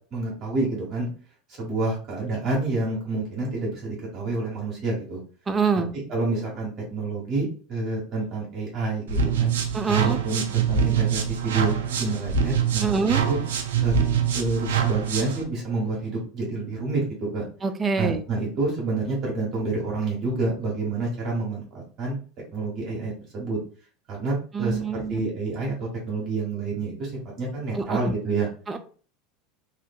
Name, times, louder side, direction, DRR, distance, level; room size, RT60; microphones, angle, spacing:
voice 1, 0.1-1.1 1.6-5.2 6.1-9.5 9.9-13.0 13.3-13.4 13.8-13.9 14.3-17.4 18.0-22.2 22.5-23.6 24.1-27.1 27.4-28.5, right 3 dB, 45° right, -4 dB, 1.2 m, -28 dB
voice 2, 5.5-5.9 9.7-10.2 12.8-13.2 17.6-18.2 24.5-25.2 27.8-28.1 28.7-28.8, right 5 dB, 25° right, 8 dB, 0.4 m, -25 dB
sound 1, 9.1-15.4, right 7 dB, 80° right, 0.4 m, -24 dB
2.6 x 2.5 x 2.3 m, 0.40 s
hypercardioid pair, 90°, 0 cm